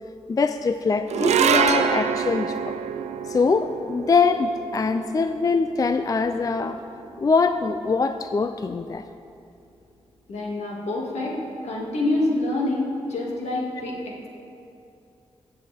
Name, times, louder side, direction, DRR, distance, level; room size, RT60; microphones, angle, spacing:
voice 1, 0.3-2.7 3.3-6.8 7.2-9.0, left 4 dB, 35° left, 9 dB, 0.3 m, -23 dB
sound 1, 1.1-7.6, right 7 dB, 85° right, 0.5 m, -26 dB
voice 2, 10.3-11.4 11.6-14.3, left 2 dB, 75° left, -3 dB, 2.2 m, -26 dB
16.5 x 7.7 x 3.5 m, 2.6 s
cardioid pair, 70°, 11 cm